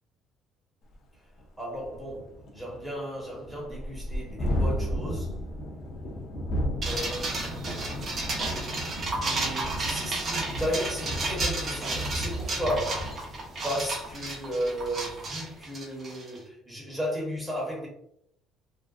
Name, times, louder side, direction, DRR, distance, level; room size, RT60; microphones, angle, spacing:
Thunderstorm, 0.9-1.0 1.4-1.5 1.8-15.4, equal, 55° left, 0.6 m, -34 dB
voice 1, 1.6-5.4 6.8-8.2 9.1-13.1 13.6-17.9, equal, 10° right, -4 dB, 1.1 m, -34 dB
sound 1, 6.8-16.4, right 2 dB, 40° right, 0.8 m, -33 dB
2.6 x 2.2 x 2.3 m, 0.73 s
cardioid pair, 100°, 0 cm